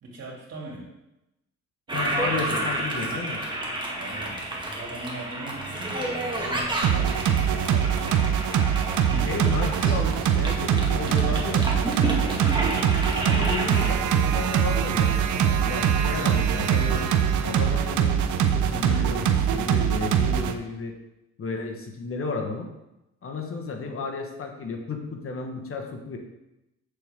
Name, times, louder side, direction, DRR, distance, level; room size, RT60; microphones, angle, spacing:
voice 1, 0.0-0.9 1.9-2.9 3.9-8.2 10.9-13.7, right 2 dB, 55° right, -2 dB, 2.8 m, -41 dB
voice 2, 1.9-3.4 9.2-11.6 13.2-17.1 17.4-20.9 21.4-22.7 23.2-26.2, left 4 dB, 45° left, 4 dB, 1.2 m, -33 dB
Toilet flush, 1.9-13.9, right 1 dB, 15° right, 2.0 m, -31 dB
sound 1, 6.8-20.5, right 9 dB, 80° right, 0.7 m, -23 dB
sound 2, 9.1-19.5, left 1 dB, 5° left, 2.6 m, -39 dB
7.8 x 6.9 x 3.6 m, 0.92 s
cardioid pair, 90°, 30 cm